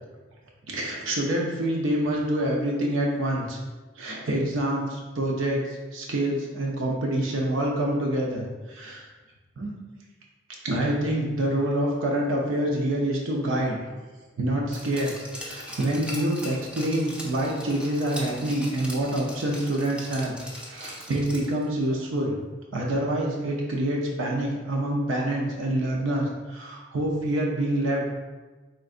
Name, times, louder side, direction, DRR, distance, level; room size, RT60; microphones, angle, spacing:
voice 1, 0.7-3.6 4.0-9.0 9.6-9.7 10.6-13.8 14.4-20.3 20.6-22.4 22.7-28.1, right 1 dB, 75° right, -1 dB, 0.6 m, -26 dB
Glass, 14.7-21.7 22.0-22.1, equal, 5° right, 0.6 m, -40 dB
4.4 x 3.8 x 2.5 m, 1.3 s
head